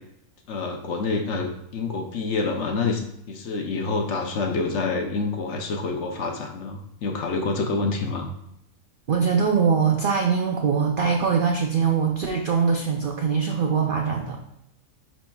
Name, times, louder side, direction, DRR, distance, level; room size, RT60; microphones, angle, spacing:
voice 1, 0.5-8.3, left 3 dB, 60° left, 3 dB, 0.9 m, -27 dB
voice 2, 9.1-14.4, right 6 dB, 65° right, 2 dB, 0.5 m, -22 dB
10.0 x 4.0 x 2.3 m, 0.79 s
omnidirectional pair, 1.6 m